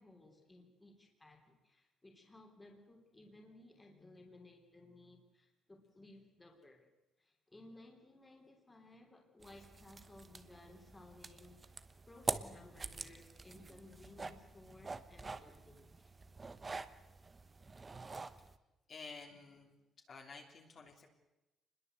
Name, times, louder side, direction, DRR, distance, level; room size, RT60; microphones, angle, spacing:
voice 1, 0.0-6.9 7.2-16.1 16.5-16.8 19.5-19.7 20.8-20.9, left 2 dB, 10° left, 3 dB, 3.3 m, -59 dB
sound 1, 9.4-18.6, right 3 dB, 15° right, 1.0 m, -46 dB
voice 2, 18.9-19.7 20.1-21.1, left 4 dB, 35° left, 2 dB, 3.2 m, -51 dB
28.0 x 21.0 x 8.0 m, 1.0 s
cardioid pair, 180°, 0 cm